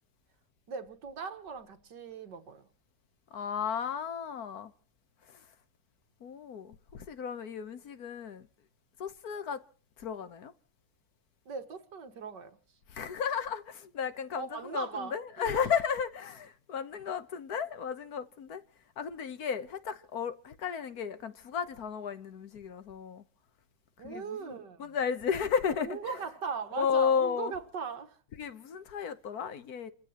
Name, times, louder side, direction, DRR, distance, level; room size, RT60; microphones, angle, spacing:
voice 1, 0.7-2.7 11.5-12.6 14.3-15.8 24.0-25.0 25.7-28.2, right 6 dB, 80° right, 2.2 m, -39 dB
voice 2, 3.3-4.7 5.3-5.5 6.2-8.5 9.0-9.6 10.0-10.5 12.9-18.6 19.0-23.2 24.0-24.5 24.8-26.0 26.8-27.5 28.4-29.9, left 7 dB, 60° left, 1.5 m, -33 dB
29.0 x 16.0 x 3.0 m
omnidirectional pair, 1.9 m